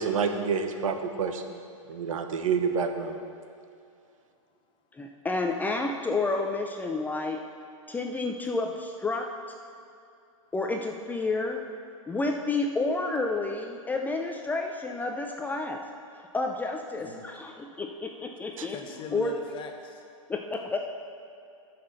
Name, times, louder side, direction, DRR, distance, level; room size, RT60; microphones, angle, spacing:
voice 1, 0.0-1.6 1.9-3.2 18.6-18.7, right 5 dB, 75° right, 7 dB, 1.0 m, -28 dB
voice 2, 5.0-7.4 7.9-9.3 10.5-11.6 12.1-15.8 16.1-18.8 19.1-19.3 20.3-20.8, left 3 dB, 10° left, 3 dB, 0.5 m, -30 dB
voice 3, 17.0-17.4 18.7-20.0, left 3 dB, 30° left, 4 dB, 1.2 m, -40 dB
9.5 x 5.9 x 6.6 m, 2.6 s
hypercardioid pair, 120°, 17 cm